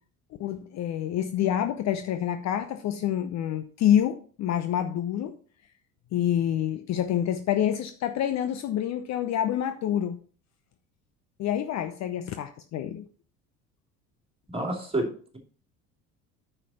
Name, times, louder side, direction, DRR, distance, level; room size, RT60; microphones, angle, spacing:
voice 1, 0.4-5.4 6.1-10.2 11.4-13.0, left 10 dB, 40° left, 0.8 m, -27 dB
voice 2, 14.5-15.4, right 1 dB, 15° right, 2.7 m, -29 dB
9.5 x 5.8 x 4.2 m
figure-of-eight pair, 65°, 44 cm